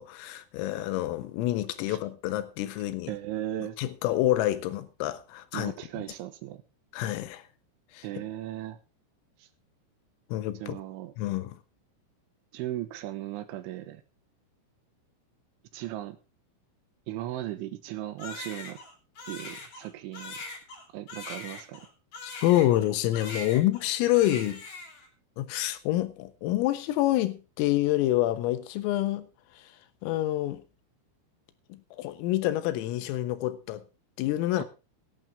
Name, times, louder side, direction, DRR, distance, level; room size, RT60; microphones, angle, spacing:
voice 1, 0.0-3.1 3.8-6.0 6.9-7.4 7.9-8.2 10.3-10.8 11.2-11.6 22.2-24.6 25.4-29.3 29.6-29.7 30.0-30.6 31.7-33.8 34.2-34.6, left 15 dB, 85° left, 3.8 m, -27 dB
voice 2, 3.1-3.8 5.5-6.6 8.0-8.8 9.4-9.5 10.6-11.1 12.5-14.0 15.7-16.2 17.1-18.8 19.3-20.4 20.9-21.8 34.5-34.6, right 13 dB, 75° right, 3.3 m, -37 dB
Crying sobbing, 18.2-22.9 23.1-23.9 24.1-25.1, left 3 dB, 40° left, 3.8 m, -41 dB
17.0 x 11.0 x 3.6 m
omnidirectional pair, 5.9 m